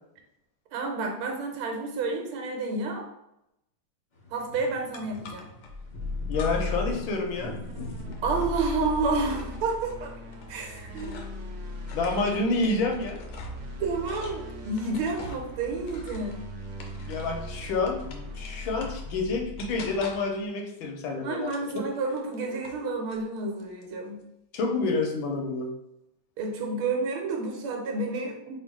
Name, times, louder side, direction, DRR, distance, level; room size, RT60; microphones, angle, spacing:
voice 1, 0.7-3.1 4.3-5.5 8.2-10.1 10.5-11.4 13.8-16.5 21.2-24.2 26.4-28.6, right 3 dB, 80° right, 1 dB, 1.6 m, -30 dB
sound 1, 4.2-9.6, left 1 dB, 50° left, 0.7 m, -44 dB
sound 2, 4.9-5.7 6.3-6.9 7.2-11.5 11.8-17.5 17.9-19.1 19.6-20.4 21.4-22.8 23.1-23.7, left 3 dB, 90° left, 1.5 m, -45 dB
sound 3, 5.6-20.2, left 2 dB, 65° right, 1.0 m, -38 dB
voice 2, 6.3-7.5 11.9-13.2 17.0-21.5 24.5-25.7, left 3 dB, 75° left, 2 dB, 1.3 m, -28 dB
3.5 x 2.5 x 4.5 m, 0.83 s
omnidirectional pair, 2.4 m